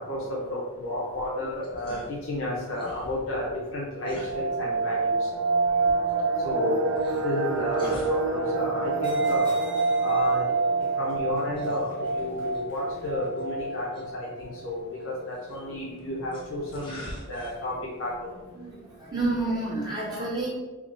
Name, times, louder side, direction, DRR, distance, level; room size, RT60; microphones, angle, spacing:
voice 1, 0.0-5.3 6.4-6.8 7.2-9.6 10.0-10.5 10.9-17.7 18.0-18.3, left 1 dB, 60° left, -5 dB, 0.7 m, -32 dB
sound 1, 1.0-19.7, equal, 25° left, 0.6 m, -48 dB
sound 2, 4.0-14.8 15.1-15.2 15.6-15.7 16.2-16.6 17.1-17.2 17.4-17.9 18.2-18.3, right 3 dB, 80° right, 0.3 m, -27 dB
sound 3, 6.3-13.3, right 1 dB, 40° right, 0.9 m, -48 dB
voice 2, 18.5-20.5, right 2 dB, 20° right, -6 dB, 0.6 m, -30 dB
3.5 x 3.4 x 2.5 m, 1.3 s
head